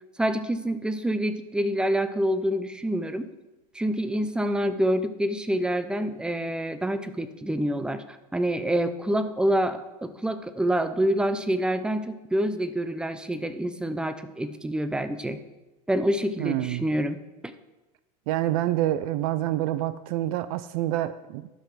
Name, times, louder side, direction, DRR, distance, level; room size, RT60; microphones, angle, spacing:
voice 1, 0.2-3.3 3.7-15.4 15.9-17.5, right 1 dB, 5° right, 11 dB, 0.5 m, -27 dB
voice 2, 16.4-16.8 18.3-21.5, right 14 dB, 60° right, 14 dB, 0.5 m, -27 dB
12.0 x 5.9 x 4.6 m, 1.1 s
supercardioid pair, 135°, 21 cm